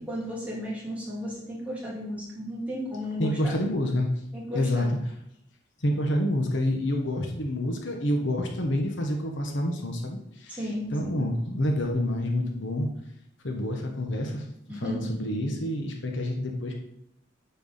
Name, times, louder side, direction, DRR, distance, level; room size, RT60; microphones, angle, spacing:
voice 1, 0.1-3.6 4.3-4.9 10.5-11.3 14.7-15.1, equal, 5° right, -6 dB, 3.0 m, -34 dB
voice 2, 3.2-4.1 4.5-4.8 5.8-10.6 10.9-12.9 13.4-16.7, left 1 dB, 65° left, 2 dB, 1.2 m, -28 dB
9.3 x 4.6 x 5.6 m, 0.77 s
head